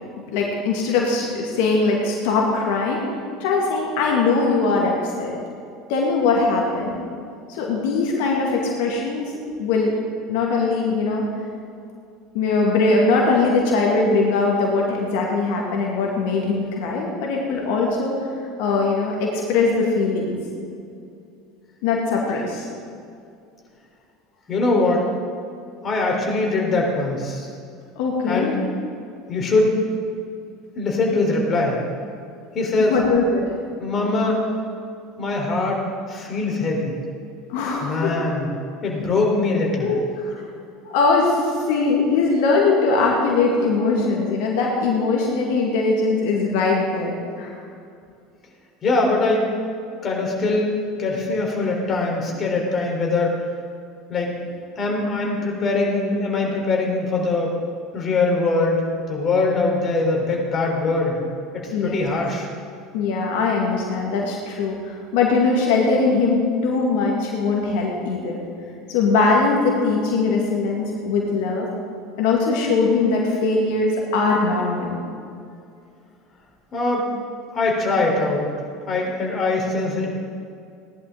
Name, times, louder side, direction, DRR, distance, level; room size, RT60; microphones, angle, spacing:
voice 1, 0.3-3.0 3.4-5.3 5.9-7.0 7.5-9.3 9.6-9.9 10.3-11.2 12.3-18.2 18.6-20.4 21.8-22.7 28.0-28.5 32.9-33.5 37.5-38.2 39.8-40.3 40.8-47.5 61.7-62.0 62.9-68.4 68.9-71.7 72.2-75.0, left 3 dB, 65° left, -1 dB, 2.2 m, -21 dB
voice 2, 24.5-25.1 25.8-27.5 28.3-28.5 29.3-29.7 30.8-31.8 32.5-32.9 33.8-34.4 35.2-35.8 36.1-37.0 37.8-38.5 38.8-39.9 48.8-49.5 50.0-53.4 54.1-54.3 54.8-57.6 57.9-58.8 59.1-61.2 61.5-62.5 76.7-77.1 77.5-78.5 78.9-80.1, left 3 dB, 35° left, 0 dB, 3.7 m, -22 dB
18.0 x 11.0 x 3.8 m, 2.5 s
hypercardioid pair, 75°, 0 cm